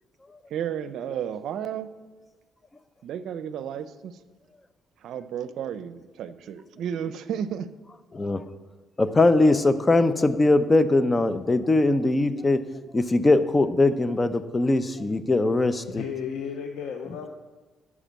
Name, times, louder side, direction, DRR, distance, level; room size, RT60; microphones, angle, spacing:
voice 1, 0.5-1.9 3.0-4.1 5.0-7.7, right 9 dB, 75° right, 13 dB, 0.6 m, -32 dB
voice 2, 9.0-12.6 12.9-16.0, left 2 dB, 25° left, 12 dB, 0.7 m, -21 dB
voice 3, 15.9-17.3, left 7 dB, 85° left, 4 dB, 0.7 m, -33 dB
12.0 x 4.9 x 7.5 m, 1.3 s
cardioid pair, 90°, 0 cm